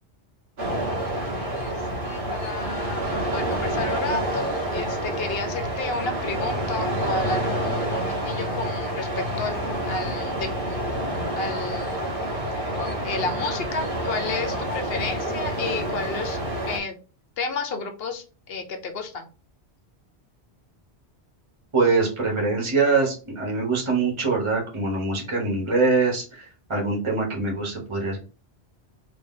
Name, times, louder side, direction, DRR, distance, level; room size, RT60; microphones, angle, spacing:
sound 1, 0.6-16.8, right 1 dB, 55° right, 1.2 m, -28 dB
voice 1, 1.0-3.0 3.3-9.6 9.9-10.5 11.4-12.1 12.7-16.4 16.7-17.0 17.4-19.3, left 3 dB, 65° left, 6 dB, 0.9 m, -32 dB
voice 2, 21.7-28.2, right 3 dB, 30° right, -1 dB, 1.1 m, -23 dB
2.9 x 2.8 x 3.6 m, 0.35 s
omnidirectional pair, 1.1 m